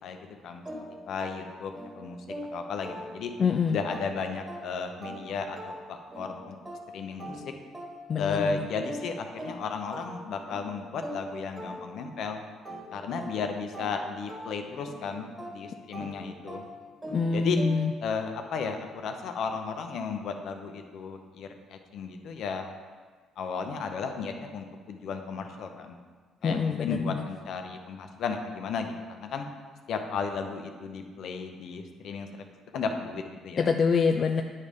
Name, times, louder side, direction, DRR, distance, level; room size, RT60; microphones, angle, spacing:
voice 1, 0.0-0.6 1.1-2.2 2.5-3.3 3.7-6.6 6.9-7.4 8.2-12.4 12.9-16.7 17.3-17.6 18.0-22.7 23.4-26.0 26.4-28.9 29.2-29.5 29.9-32.3 32.7-33.7, left 5 dB, 65° left, 5 dB, 0.7 m, -34 dB
sound 1, 0.7-3.5 3.9-12.3 12.7-18.1, equal, 20° right, 1.8 m, -42 dB
voice 2, 3.4-3.8 8.1-8.6 17.1-17.9 26.4-27.3 33.6-34.4, left 5 dB, 45° left, 5 dB, 0.3 m, -25 dB
9.5 x 3.3 x 5.2 m, 1.5 s
supercardioid pair, 80°, 0 cm